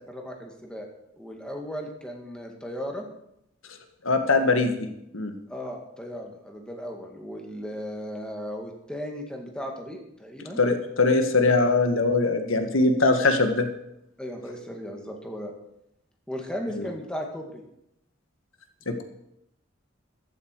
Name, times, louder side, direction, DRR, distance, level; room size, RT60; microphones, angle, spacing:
voice 1, 0.1-0.9 1.2-3.1 5.5-10.6 14.2-15.5 16.3-17.6, equal, 5° left, 1 dB, 2.2 m, -36 dB
voice 2, 4.0-4.9 5.1-5.3 10.6-13.7 16.8-16.9 18.9-19.0, left 3 dB, 85° left, 6 dB, 1.7 m, -22 dB
14.5 x 12.5 x 4.8 m, 0.80 s
head